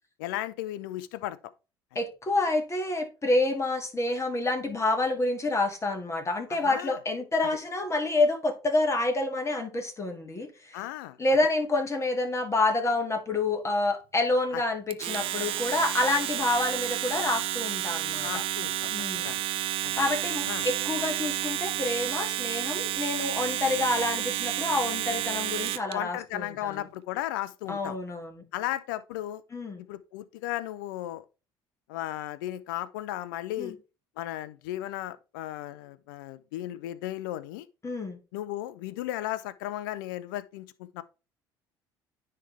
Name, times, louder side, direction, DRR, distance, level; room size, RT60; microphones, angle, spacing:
voice 1, 0.2-1.4 6.5-7.0 10.7-11.2 18.2-18.9 19.2-19.4 19.8-20.0 20.5-20.7 25.9-28.0 28.5-29.4 29.9-31.2 31.9-33.8 34.2-37.7 38.3-41.0, left 14 dB, 85° left, 0.4 m, -35 dB
voice 2, 2.0-10.8 11.2-18.4 18.9-19.3 20.0-26.9 27.7-28.4 29.5-29.8 33.6-33.8 37.8-38.2, left 2 dB, 25° left, 2.0 m, -28 dB
Domestic sounds home sounds, 14.9-25.9, right 13 dB, 55° right, 0.4 m, -31 dB
9.9 x 3.3 x 3.3 m
hypercardioid pair, 65°, 11 cm